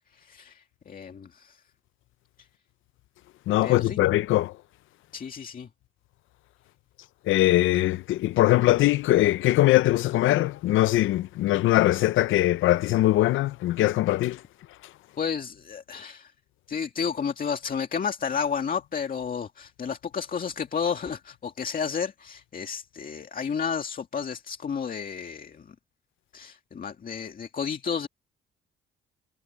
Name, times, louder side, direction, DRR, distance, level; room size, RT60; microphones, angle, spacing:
voice 1, 0.1-1.6 3.6-4.0 5.1-5.7 15.2-16.3 16.7-25.7 26.3-28.1, left 6 dB, 45° left, 2.1 m, -32 dB
voice 2, 3.5-4.5 7.3-14.4, left 16 dB, 80° left, 0.6 m, -21 dB
cardioid pair, 90°, 20 cm